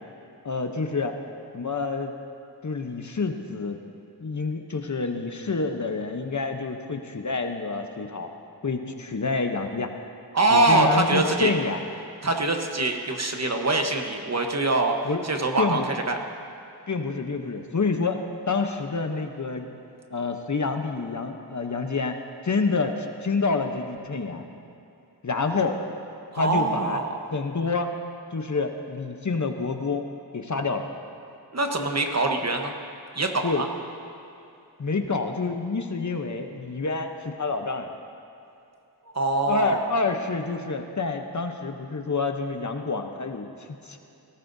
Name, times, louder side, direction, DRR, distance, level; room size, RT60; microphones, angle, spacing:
voice 1, 0.4-1.2 1.5-2.1 2.6-3.8 4.2-8.3 8.6-9.9 10.5-11.8 15.0-15.2 15.6-15.8 16.9-19.8 20.1-22.2 22.4-24.4 25.2-25.8 26.4-27.0 27.3-27.9 28.3-30.1 30.3-30.9 33.4-33.6 34.8-37.9 39.5-44.0, left 4 dB, 45° left, 5 dB, 0.9 m, -28 dB
voice 2, 10.3-11.5 12.2-15.0 15.2-16.2 26.3-27.1 31.5-32.7 33.1-33.7 39.1-39.9, right 2 dB, 40° right, 3 dB, 1.2 m, -24 dB
18.5 x 17.5 x 2.7 m, 2.7 s
wide cardioid pair, 100°, 40 cm